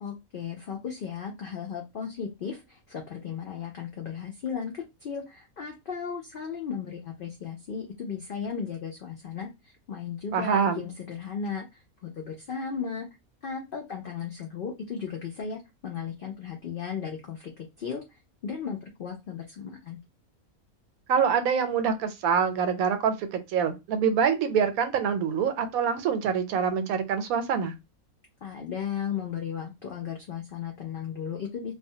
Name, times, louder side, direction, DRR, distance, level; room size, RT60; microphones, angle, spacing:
voice 1, 0.0-13.1 13.4-18.0 18.4-20.0 28.4-31.7, left 7 dB, 85° left, 2 dB, 0.4 m, -35 dB
voice 2, 10.3-10.9 21.1-27.7, right 7 dB, 80° right, 8 dB, 1.0 m, -25 dB
2.4 x 2.2 x 2.7 m, 0.24 s
omnidirectional pair, 1.5 m